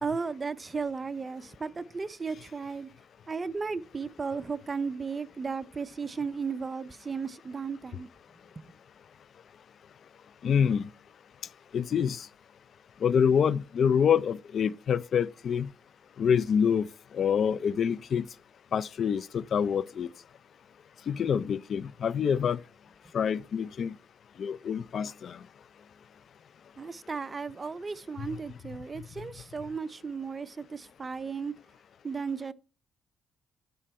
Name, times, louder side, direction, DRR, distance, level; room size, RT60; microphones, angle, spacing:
voice 1, 0.0-2.9 3.3-8.1 8.6-8.7 26.8-31.5 32.0-32.5, right 5 dB, 30° right, 0.5 m, -35 dB
voice 2, 10.4-10.9 11.7-12.3 13.0-15.7 16.2-16.9 17.1-18.2 18.7-20.1 21.1-22.6 23.1-23.9 24.4-25.4, left 7 dB, 55° left, 0.4 m, -26 dB
11.5 x 5.5 x 4.2 m
cardioid pair, 90°, 0 cm